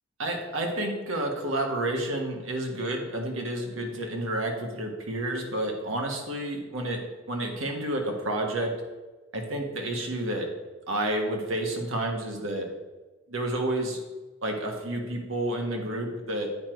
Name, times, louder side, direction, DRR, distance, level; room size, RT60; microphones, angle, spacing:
voice 1, 0.2-7.0 7.3-8.7 9.3-10.5 10.9-12.7 13.3-14.0 14.4-16.5, right 1 dB, 90° right, 2 dB, 1.5 m, -30 dB
8.6 x 4.5 x 5.1 m, 1.2 s
head